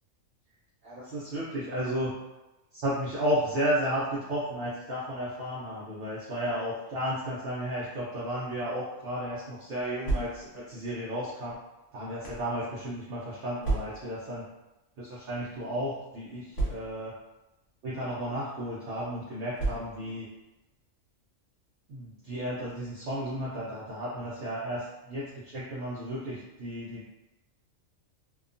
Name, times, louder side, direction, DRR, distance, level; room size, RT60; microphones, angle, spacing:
voice 1, 0.8-2.2 2.7-11.6 11.9-14.4 15.0-17.2 17.8-20.3 21.9-27.1, equal, 55° right, -8 dB, 0.7 m, -33 dB
sound 1, 10.0-10.7 11.5-12.5 13.6-14.2 15.1-15.3 15.5-15.6 16.5-17.2 18.1-18.3 19.6-20.2, right 2 dB, 65° left, 1.0 m, -32 dB
2.8 x 2.2 x 2.5 m, 1.0 s
omnidirectional pair, 1.4 m